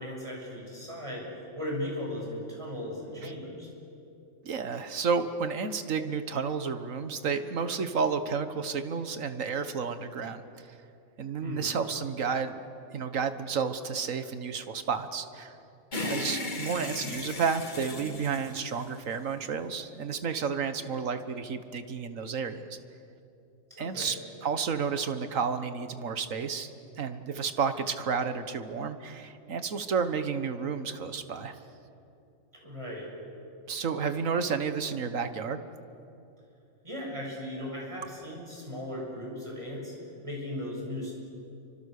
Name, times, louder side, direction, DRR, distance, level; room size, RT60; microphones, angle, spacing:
voice 1, 0.0-3.7 11.4-11.8 23.7-24.2 32.6-33.1 36.8-40.0 40.2-41.1, left 1 dB, 25° right, -2 dB, 7.3 m, -37 dB
voice 2, 4.4-10.7 11.2-12.6 12.9-15.6 16.1-22.7 23.8-24.2 24.4-26.7 27.0-31.6 33.7-35.6, right 5 dB, 85° right, 10 dB, 1.7 m, -31 dB
sound 1, 15.9-19.4, left 2 dB, 35° left, 1.8 m, -36 dB
29.5 x 25.0 x 6.6 m, 2.7 s
omnidirectional pair, 1.3 m